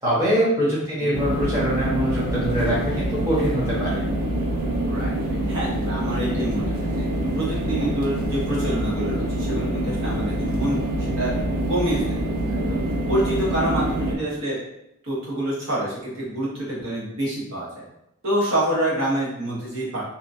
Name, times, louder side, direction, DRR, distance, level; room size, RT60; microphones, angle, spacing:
voice 1, 0.0-4.0, equal, 15° right, -9 dB, 0.9 m, -23 dB
sound 1, 1.1-14.2, right 1 dB, 90° right, 0.5 m, -25 dB
voice 2, 4.8-7.1 7.3-10.8 11.2-11.3 11.7-12.8 13.1-14.6 15.0-17.8 18.2-20.0, right 1 dB, 65° right, -7 dB, 1.0 m, -27 dB
2.8 x 2.3 x 2.5 m, 0.84 s
head